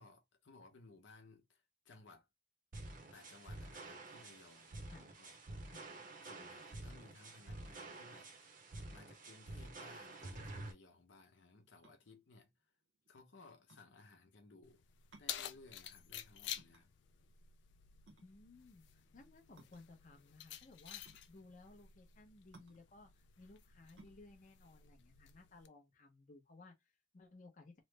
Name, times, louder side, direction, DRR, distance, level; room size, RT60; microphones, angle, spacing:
voice 1, 0.0-2.3 3.1-5.7 6.2-8.5 8.9-12.5 13.1-14.8 15.2-16.9, left 3 dB, 85° left, 0.8 m, -61 dB
sound 1, 2.7-10.7, right 2 dB, 45° right, 0.6 m, -50 dB
sound 2, 11.8-26.0, right 2 dB, 75° right, 0.9 m, -66 dB
Keys jangling, 14.6-25.7, left 11 dB, 70° left, 0.3 m, -51 dB
voice 2, 18.2-21.0 21.3-27.7, left 3 dB, 45° left, 0.7 m, -59 dB
3.1 x 2.0 x 3.1 m
head